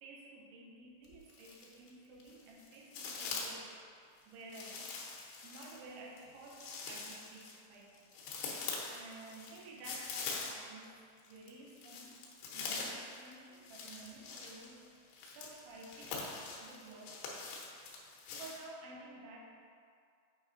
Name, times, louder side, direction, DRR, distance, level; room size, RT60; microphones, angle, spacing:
voice 1, 0.0-4.9 5.4-8.1 8.9-11.0 11.3-12.3 12.5-16.3 16.6-17.7 18.4-19.6, right 2 dB, 85° right, -2 dB, 3.1 m, -53 dB
sound 1, 1.0-1.9 2.2-3.7 4.5-10.9 11.2-18.6, left 4 dB, 75° left, 2.8 m, -44 dB
8.9 x 3.3 x 5.1 m, 2.3 s
omnidirectional pair, 5.3 m